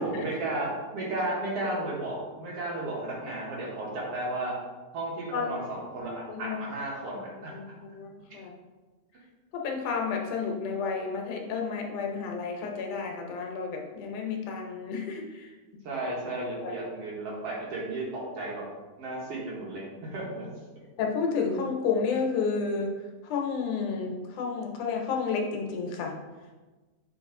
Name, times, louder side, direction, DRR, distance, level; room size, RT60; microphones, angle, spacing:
voice 1, 0.0-4.5 4.9-7.5 15.8-18.1 18.4-18.6 19.0-20.5, right 2 dB, 60° right, -4 dB, 2.0 m, -33 dB
voice 2, 5.3-5.7 6.3-6.6 7.5-7.6 7.9-8.5 9.5-15.5 16.6-16.7 21.0-22.9 23.2-26.1, left 5 dB, 80° left, 1 dB, 2.3 m, -31 dB
7.6 x 4.2 x 3.7 m, 1.3 s
omnidirectional pair, 3.5 m